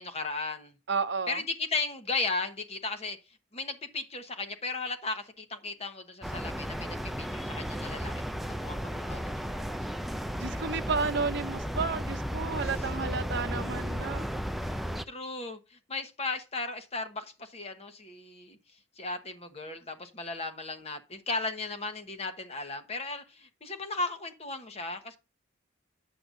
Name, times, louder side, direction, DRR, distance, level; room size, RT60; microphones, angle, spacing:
voice 1, 0.0-0.7 1.3-3.2 3.5-8.1 8.5-9.4 9.7-9.8 12.6-12.9 14.7-14.8 15.1-18.6 19.0-25.2, left 3 dB, 30° left, 1.0 m, -36 dB
voice 2, 0.9-1.4 10.4-14.3, right 5 dB, 55° right, 0.7 m, -32 dB
sound 1, 6.2-15.0, equal, ahead, 0.4 m, -34 dB
9.7 x 7.7 x 2.6 m
head